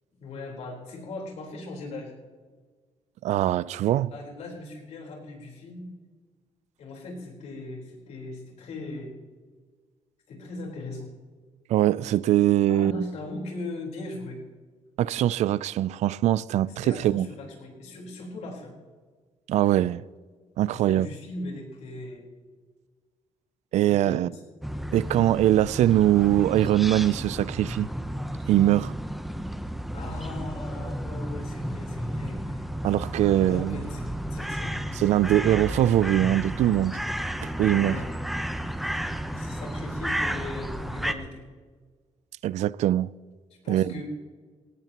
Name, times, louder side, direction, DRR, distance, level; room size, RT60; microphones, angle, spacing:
voice 1, 0.2-2.1 4.1-5.9 6.8-9.1 10.3-11.1 12.7-14.4 16.6-18.7 20.7-22.3 23.7-24.4 29.9-32.7 33.3-34.8 37.7-38.1 39.3-41.4 43.6-44.0, left 2 dB, 75° left, 4.1 m, -39 dB
voice 2, 3.2-4.1 11.7-13.1 15.0-17.3 19.5-20.0 20.6-21.1 23.7-24.3 24.9-27.9 28.5-28.9 32.8-33.8 35.0-36.9 37.4-38.0 42.4-43.1 43.7-43.9, right 13 dB, 85° right, 0.4 m, -22 dB
sound 1, 24.6-41.1, equal, ahead, 0.7 m, -32 dB
18.5 x 18.0 x 3.0 m
cardioid pair, 160°, 12 cm